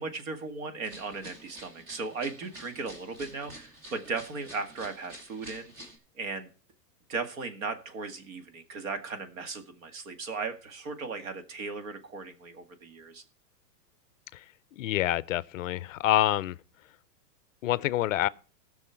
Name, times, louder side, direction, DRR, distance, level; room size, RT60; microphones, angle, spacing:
voice 1, 0.0-5.7 6.2-6.5 7.1-13.2, right 4 dB, 55° right, 2.0 m, -37 dB
sound 1, 0.8-6.0, right 1 dB, 25° right, 2.4 m, -49 dB
voice 2, 14.7-16.6 17.6-18.3, left 14 dB, 55° left, 0.5 m, -27 dB
18.5 x 6.3 x 4.5 m
supercardioid pair, 165°, 50 cm